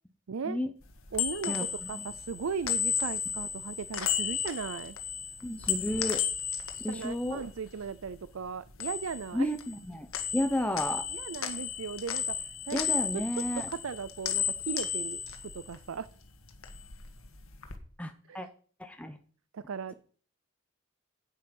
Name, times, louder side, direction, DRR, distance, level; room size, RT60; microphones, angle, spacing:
voice 1, 0.3-0.6 1.1-5.0 6.7-9.5 11.1-12.4 12.7-15.2 15.5-16.1 18.3-18.5 19.5-19.9, right 5 dB, 75° right, 16 dB, 0.5 m, -37 dB
sound 1, 0.8-8.1 8.4-9.8 10.1-16.1 16.4-17.8, left 8 dB, 70° left, 1.8 m, -34 dB
voice 2, 1.4-2.1 5.4-6.2 6.8-7.4 9.3-10.1 10.3-11.1 12.7-13.7 18.0-18.5 18.8-19.2, left 1 dB, 5° left, 6 dB, 0.9 m, -32 dB
10.0 x 9.5 x 5.4 m, 0.43 s
head